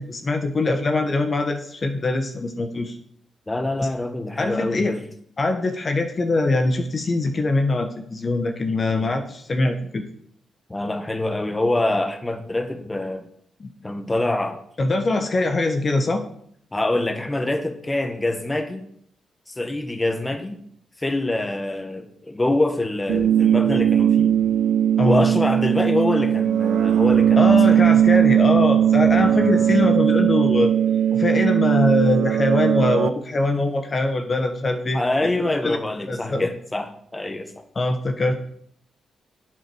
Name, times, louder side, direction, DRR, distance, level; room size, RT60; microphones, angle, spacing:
voice 1, 0.0-3.0 3.8-3.9 4.4-4.9 5.4-10.0 13.6-13.7 14.8-16.2 25.0-25.3 27.4-30.7 31.1-35.0 35.4-35.8 36.1-36.5 37.7-38.3, left 2 dB, 45° left, 6 dB, 1.4 m, -22 dB
voice 2, 3.5-5.1 8.7-9.1 10.7-13.3 13.8-14.6 16.7-18.9 19.5-20.6 21.0-24.4 25.0-27.8 34.9-37.6, left 2 dB, 20° left, 7 dB, 1.5 m, -25 dB
sound 1, 23.1-33.1, right 9 dB, 80° right, 0.4 m, -18 dB
8.1 x 7.6 x 6.4 m, 0.64 s
supercardioid pair, 50°, 0 cm